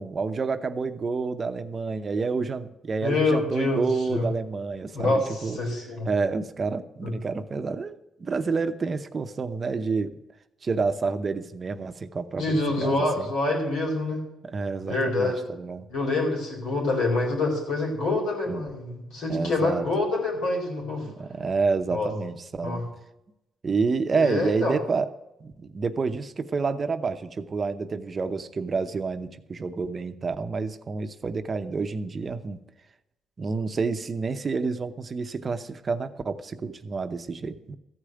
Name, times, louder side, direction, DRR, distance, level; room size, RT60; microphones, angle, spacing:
voice 1, 0.0-5.6 6.0-10.1 10.6-13.3 14.4-15.9 18.5-18.7 19.3-19.8 21.0-22.8 23.6-25.1 25.4-32.6 33.4-37.7, right 4 dB, 35° right, 9 dB, 0.8 m, -29 dB
voice 2, 3.0-3.8 4.1-4.3 4.9-6.1 7.0-7.2 12.4-14.2 14.8-15.4 15.9-21.1 21.9-22.1 22.6-22.8 24.1-24.8, left 2 dB, 85° left, -1 dB, 4.5 m, -26 dB
14.0 x 4.9 x 9.0 m, 0.89 s
cardioid pair, 95°, 0 cm